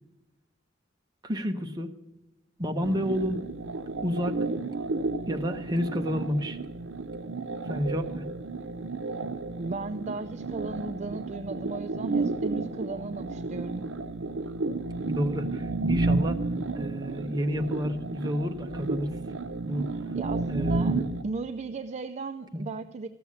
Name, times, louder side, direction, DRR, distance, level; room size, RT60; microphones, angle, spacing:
voice 1, 1.2-1.9 2.6-3.4 4.0-4.4 5.3-6.6 7.6-8.3 15.0-16.4 16.7-19.1 19.6-19.9 20.5-21.0 22.5-22.6, equal, 20° right, 5 dB, 0.8 m, -30 dB
sound 1, 2.8-21.2, right 3 dB, 75° right, 0.6 m, -32 dB
voice 2, 9.6-13.9 20.1-21.0 21.2-23.1, right 3 dB, 35° right, 10 dB, 0.4 m, -36 dB
14.5 x 6.9 x 8.5 m, 1.0 s
head